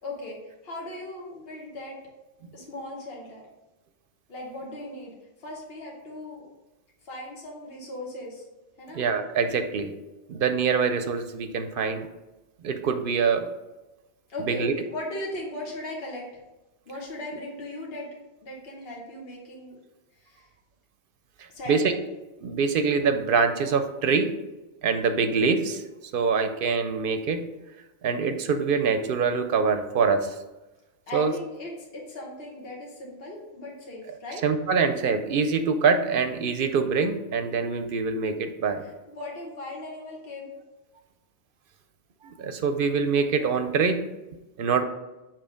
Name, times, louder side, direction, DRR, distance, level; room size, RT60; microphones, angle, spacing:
voice 1, 0.0-0.4 0.6-2.0 2.5-3.4 4.3-5.1 5.4-6.4 7.0-8.4 8.8-9.0 14.3-16.2 16.9-18.1 18.4-19.8 20.2-20.5 21.5-21.9 31.1-34.4 39.1-40.5, left 1 dB, 65° left, -2 dB, 1.3 m, -38 dB
voice 2, 8.9-9.9 10.3-12.1 12.6-13.5 14.5-14.7 21.7-22.0 22.4-24.3 24.8-25.8 26.1-27.4 28.0-30.3 31.1-31.3 34.4-38.8 42.2-44.0 44.6-44.8, right 5 dB, 65° right, 8 dB, 0.7 m, -24 dB
7.0 x 3.0 x 5.0 m, 1.1 s
omnidirectional pair, 1.1 m